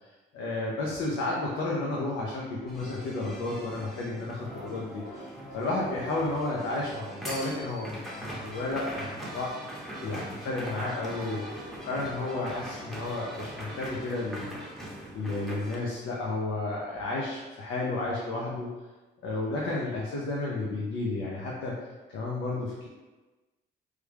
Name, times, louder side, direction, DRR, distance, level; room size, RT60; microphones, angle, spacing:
voice 1, 0.3-5.3 5.5-9.7 10.0-14.6 15.1-18.7 19.2-21.8 22.1-22.9, left 2 dB, 80° left, -4 dB, 0.6 m, -32 dB
sound 1, 2.7-15.8, equal, ahead, 0.8 m, -41 dB
3.2 x 2.2 x 3.4 m, 1.2 s
cardioid pair, 90°, 20 cm